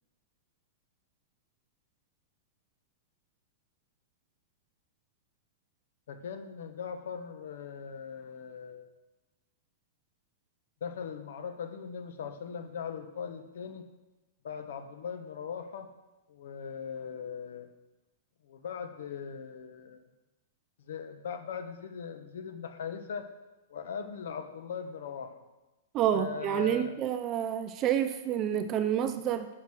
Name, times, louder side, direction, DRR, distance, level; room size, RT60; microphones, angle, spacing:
voice 1, 6.1-9.0 10.8-13.8 14.4-15.9 16.3-17.7 18.4-20.0 20.9-23.3 23.7-25.3 26.1-26.9, left 7 dB, 65° left, 9 dB, 1.2 m, -40 dB
voice 2, 25.9-29.5, right 10 dB, 20° right, 10 dB, 0.4 m, -29 dB
10.5 x 7.9 x 6.3 m, 1.1 s
supercardioid pair, 175°, 0 cm